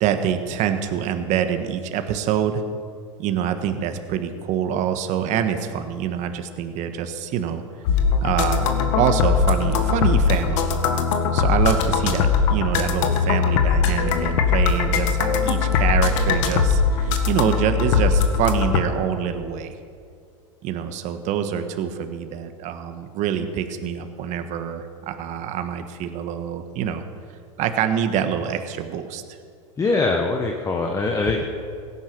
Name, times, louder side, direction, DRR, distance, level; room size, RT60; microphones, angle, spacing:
voice 1, 0.0-2.6 3.2-7.6 8.2-10.8 11.3-19.8 20.6-27.0 27.6-29.2, right 8 dB, 45° right, 8 dB, 1.4 m, -25 dB
sound 1, 7.9-18.8, left 5 dB, 65° left, 1.6 m, -20 dB
voice 2, 29.8-31.4, left 3 dB, 20° left, 2 dB, 1.3 m, -22 dB
16.5 x 10.0 x 6.2 m, 2.3 s
hypercardioid pair, 115°, 17 cm